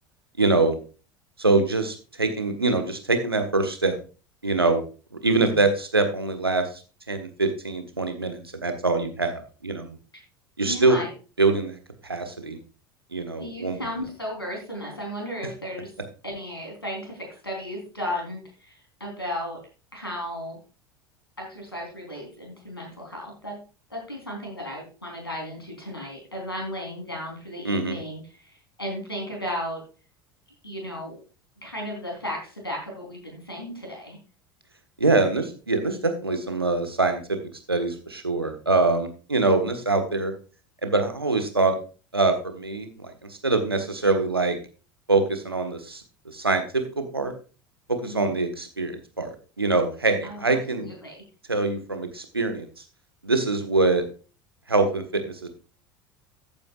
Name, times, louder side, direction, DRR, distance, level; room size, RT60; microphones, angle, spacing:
voice 1, 0.4-0.7 1.4-4.0 4.4-4.8 5.2-6.7 7.1-9.3 9.6-10.0 10.6-11.0 11.4-11.8 12.0-12.6 13.1-13.8 27.6-28.0 35.0-37.4 37.7-40.3 40.8-41.7 42.1-44.6 45.1-46.0 46.3-46.6 47.0-47.3 47.9-50.9 51.5-52.7 53.2-54.0 54.7-55.5, right 3 dB, 85° right, 6 dB, 1.4 m, -24 dB
voice 2, 5.3-5.6 10.1-10.2 10.6-11.1 13.4-15.9 16.2-19.6 19.9-20.6 21.4-23.6 23.9-29.8 30.6-31.2 31.6-34.2 48.0-48.4 50.2-50.4 50.7-51.2, equal, 85° left, 0 dB, 3.8 m, -35 dB
14.0 x 8.9 x 2.4 m, 0.35 s
figure-of-eight pair, 70°, 12 cm